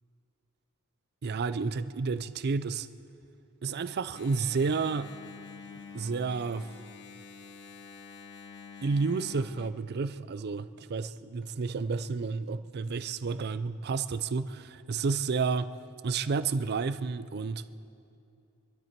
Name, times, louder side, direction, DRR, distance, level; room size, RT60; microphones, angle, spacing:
voice 1, 1.2-2.9 3.6-5.1 5.9-6.7 8.8-15.7 16.0-17.6, right 4 dB, 45° right, 13 dB, 0.4 m, -31 dB
Engine, 4.1-9.7, left 5 dB, 50° left, 0.9 m, -47 dB
25.5 x 12.0 x 4.5 m, 2.6 s
head